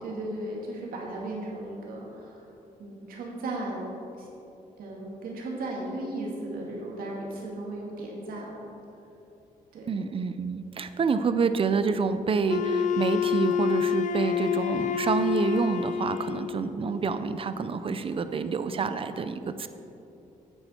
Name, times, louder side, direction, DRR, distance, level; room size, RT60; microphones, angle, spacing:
voice 1, 0.0-2.4 2.8-4.3 4.8-8.6 9.7-9.9, right 1 dB, 85° right, -2 dB, 2.1 m, -36 dB
voice 2, 9.9-19.7, right 5 dB, 40° right, 11 dB, 0.5 m, -28 dB
Wind instrument woodwind instrument, 12.5-16.6, left 8 dB, 60° left, 0.4 m, -27 dB
9.0 x 8.8 x 4.4 m, 2.9 s
cardioid pair, 95°, 15 cm